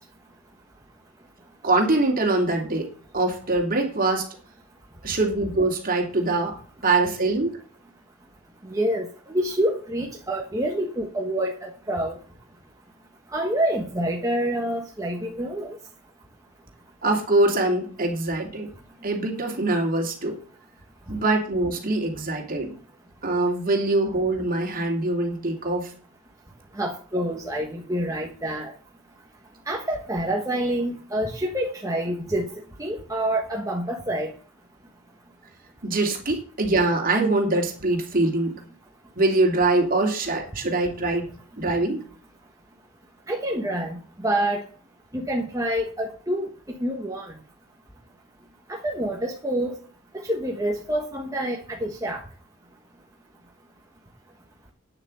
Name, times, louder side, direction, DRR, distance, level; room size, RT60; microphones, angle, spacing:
voice 1, 1.6-2.9 3.1-4.3 5.0-6.5 6.8-7.6 17.0-18.7 19.0-20.4 21.1-22.8 23.2-25.9 35.8-38.6 39.2-41.3 41.6-42.0, right 2 dB, 45° right, 3 dB, 2.7 m, -23 dB
voice 2, 8.6-12.2 13.3-15.8 26.7-28.7 29.7-32.5 32.8-34.3 43.3-44.6 45.1-46.5 46.8-47.3 48.7-49.8 50.1-52.2, right 1 dB, 15° right, 0 dB, 1.4 m, -27 dB
9.3 x 7.5 x 7.7 m, 0.42 s
head